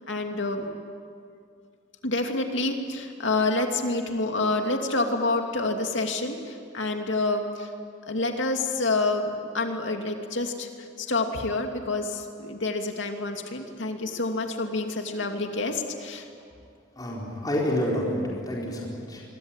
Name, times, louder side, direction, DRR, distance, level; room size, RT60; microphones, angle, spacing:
voice 1, 0.1-0.7 2.0-7.7 8.1-10.7 11.0-16.3, left 2 dB, 65° left, 4 dB, 2.7 m, -28 dB
voice 2, 17.0-19.2, equal, 20° left, -3 dB, 4.4 m, -28 dB
26.5 x 23.0 x 9.1 m, 2.3 s
head